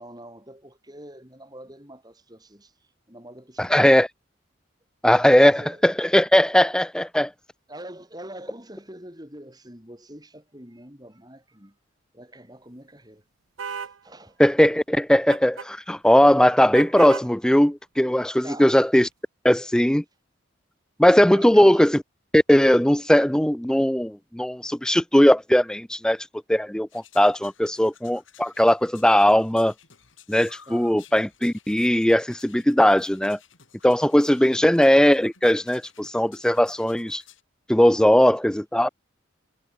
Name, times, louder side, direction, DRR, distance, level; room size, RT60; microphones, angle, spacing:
voice 1, 0.0-2.7 3.1-3.9 5.3-5.8 6.3-6.5 7.7-11.7 12.1-13.2 13.6-14.4 18.4-18.8 21.3-21.8 30.7-31.0 34.4-34.7, right 1 dB, 20° right, 6.9 m, -44 dB
voice 2, 3.6-4.1 5.0-7.3 14.4-19.1 19.4-20.0 21.0-22.0 22.3-26.2 26.5-29.7 30.3-33.4 33.8-37.2 37.7-38.9, equal, 5° left, 0.4 m, -19 dB
sound 1, 13.6-14.0 15.3-15.7 16.7-17.3, right 6 dB, 85° right, 0.8 m, -34 dB
sound 2, 26.9-37.4, left 8 dB, 75° left, 4.9 m, -53 dB
head